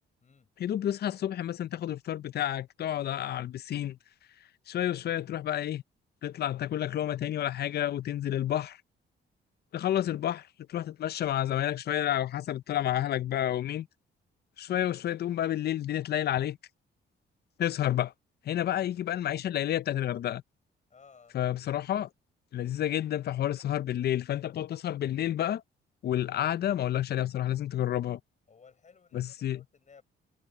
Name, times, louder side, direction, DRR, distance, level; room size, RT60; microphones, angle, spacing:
voice 1, 0.6-4.0 4.7-5.8 6.2-8.8 9.7-13.9 14.6-16.6 17.6-18.1 18.5-20.4 21.3-22.1 22.5-25.6 26.0-28.2 29.1-29.6, left 11 dB, 55° left, 0.6 m, -30 dB
voice 2, 20.9-21.4 28.5-30.0, left 5 dB, 40° left, 7.1 m, -58 dB
cardioid pair, 90°, 20 cm